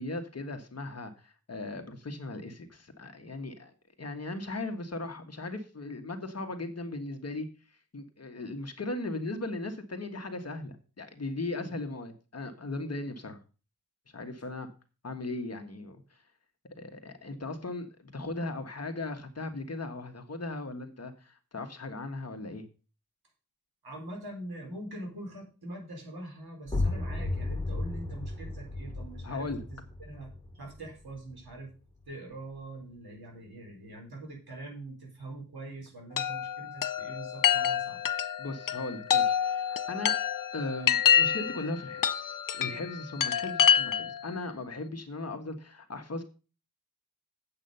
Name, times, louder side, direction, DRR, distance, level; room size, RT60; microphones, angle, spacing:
voice 1, 0.0-3.7 4.0-7.5 7.9-13.4 14.1-14.7 15.0-16.0 16.8-22.7 29.2-29.6 38.4-40.2 40.5-46.2, left 2 dB, 40° left, 6 dB, 1.5 m, -38 dB
voice 2, 23.8-31.7 32.1-38.0, right 1 dB, 80° right, 1 dB, 4.4 m, -43 dB
sound 1, 26.7-32.2, left 2 dB, 10° left, 2.3 m, -35 dB
Chime, 36.2-44.3, left 8 dB, 60° left, 0.6 m, -27 dB
8.7 x 7.8 x 5.5 m, 0.35 s
wide cardioid pair, 130°, 37 cm